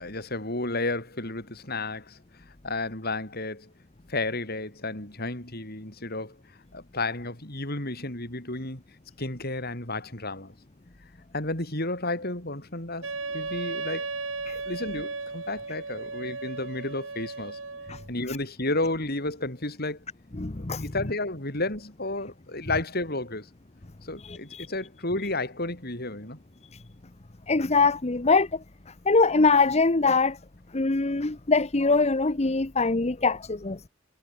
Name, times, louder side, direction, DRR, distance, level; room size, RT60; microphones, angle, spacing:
voice 1, 0.0-2.2 2.6-3.7 4.1-6.4 6.7-8.8 9.2-10.5 11.3-14.1 14.5-17.6 18.1-20.0 20.6-23.5 24.0-26.4, left 2 dB, 50° left, 7.7 m, -32 dB
Wind instrument woodwind instrument, 13.0-18.1, right 3 dB, 70° right, 3.4 m, -35 dB
voice 2, 20.3-20.9 24.2-24.7 26.7-26.8 27.5-30.4 30.7-33.8, left 3 dB, 30° left, 1.0 m, -23 dB
head